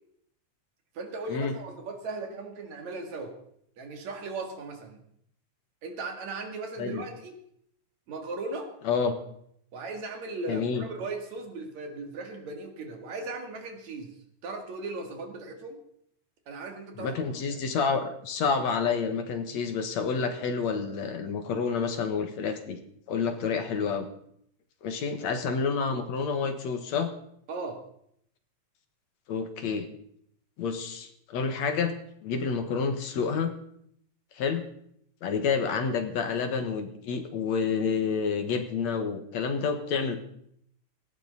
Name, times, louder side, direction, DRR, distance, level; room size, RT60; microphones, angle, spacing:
voice 1, 1.0-3.4 3.8-5.0 5.8-7.4 8.1-8.7 9.7-14.2 14.4-15.8 16.5-17.6 27.5-27.8, right 3 dB, 70° right, 5 dB, 3.3 m, -37 dB
voice 2, 10.5-10.8 17.0-22.8 23.1-24.1 24.8-27.1 29.3-29.9 30.6-32.0 32.2-33.5 34.4-34.6 35.2-40.2, left 5 dB, 70° left, 7 dB, 2.8 m, -29 dB
18.5 x 16.0 x 4.1 m, 0.70 s
omnidirectional pair, 3.4 m